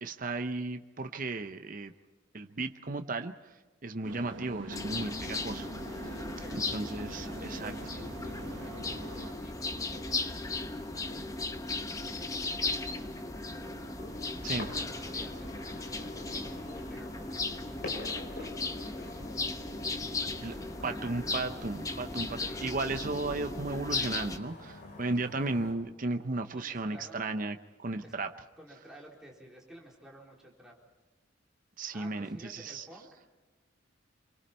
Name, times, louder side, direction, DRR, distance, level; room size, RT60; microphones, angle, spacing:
voice 1, 0.0-1.9 2.3-3.6 3.8-6.1 6.7-7.7 14.4-14.7 20.4-20.5 20.8-28.3 31.8-32.8, right 3 dB, 45° right, 7 dB, 0.8 m, -35 dB
sound 1, 4.0-9.3, right 2 dB, 75° right, 1.5 m, -44 dB
sound 2, 4.7-24.4, left 3 dB, 15° left, 0.9 m, -37 dB
voice 2, 6.1-10.9 12.0-13.8 14.4-18.6 18.9-19.5 19.9-21.1 22.4-22.8 26.5-27.2 28.0-28.1 28.6-30.7 31.9-33.3, right 1 dB, 5° right, -3 dB, 4.1 m, -53 dB
sound 3, 8.8-25.7, left 2 dB, 60° left, 6.1 m, -48 dB
26.5 x 24.0 x 4.4 m, 1.2 s
head